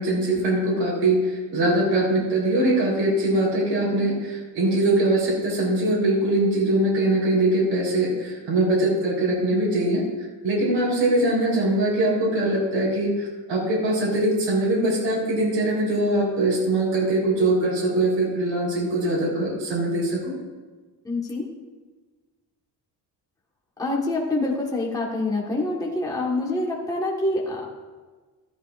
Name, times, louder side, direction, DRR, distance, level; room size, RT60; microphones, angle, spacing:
voice 1, 0.0-10.0 10.4-20.3, right 1 dB, 85° right, -4 dB, 3.6 m, -22 dB
voice 2, 21.0-21.5 23.8-27.7, left 2 dB, 10° left, -3 dB, 1.3 m, -26 dB
14.5 x 11.0 x 2.4 m, 1.3 s
cardioid pair, 175°, 44 cm